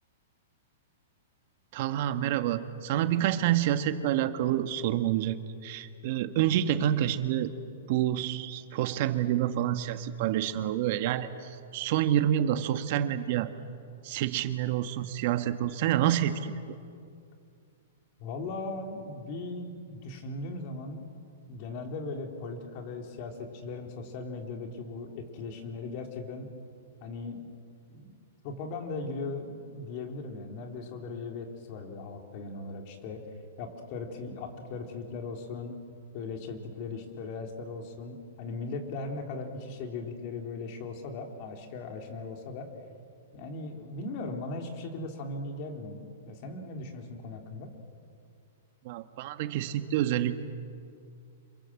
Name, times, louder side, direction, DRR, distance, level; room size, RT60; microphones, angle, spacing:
voice 1, 1.7-5.4 5.6-7.5 7.9-13.5 14.0-16.5 48.8-50.3, right 11 dB, 55° right, 9 dB, 1.5 m, -28 dB
voice 2, 18.2-21.0 21.5-26.5 27.0-27.5 27.9-28.2 28.4-33.2 33.6-35.8 36.1-42.7 43.3-47.7, left 3 dB, 50° left, 3 dB, 3.9 m, -38 dB
27.0 x 23.0 x 7.7 m, 2.4 s
hypercardioid pair, 125°, 0 cm